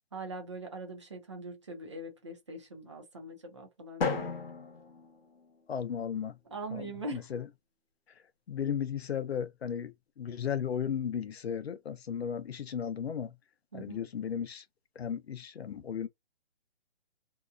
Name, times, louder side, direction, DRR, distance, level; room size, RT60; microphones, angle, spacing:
voice 1, 0.1-4.3 6.5-7.3 13.7-14.0, right 2 dB, 30° right, 0.7 m, -42 dB
Drum, 4.0-6.0, left 4 dB, 65° left, 1.0 m, -36 dB
voice 2, 5.7-6.4 6.7-7.5 8.5-13.3 13.7-14.6 15.0-16.1, left 8 dB, 85° left, 0.7 m, -35 dB
2.8 x 2.2 x 2.4 m
hypercardioid pair, 175°, 31 cm